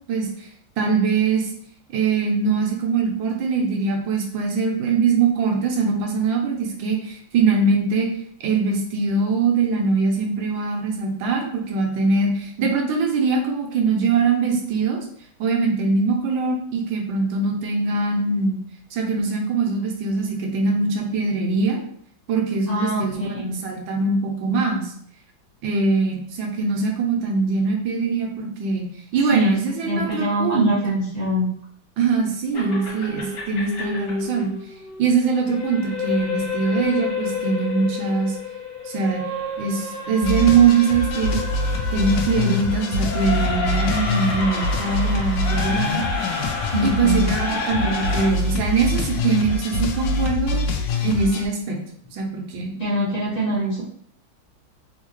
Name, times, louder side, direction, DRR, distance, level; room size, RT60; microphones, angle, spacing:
voice 1, 0.8-1.5 1.9-8.1 8.4-15.0 15.4-18.6 18.9-21.8 22.3-23.3 23.6-24.9 25.6-30.7 32.0-34.5 35.0-38.4 38.8-39.2 39.6-41.4 41.9-46.0 46.8-50.6 51.0-51.8 52.1-52.7, right 4 dB, 85° right, 1 dB, 1.5 m, -22 dB
voice 2, 22.7-23.6 29.2-29.6 29.9-31.5 46.7-47.4 52.8-53.8, equal, 30° left, -7 dB, 0.9 m, -24 dB
sound 1, 32.5-48.3, left 4 dB, 50° left, 1.5 m, -30 dB
sound 2, 40.2-51.5, left 2 dB, 75° left, 1.2 m, -25 dB
3.6 x 2.7 x 2.9 m, 0.63 s
omnidirectional pair, 2.1 m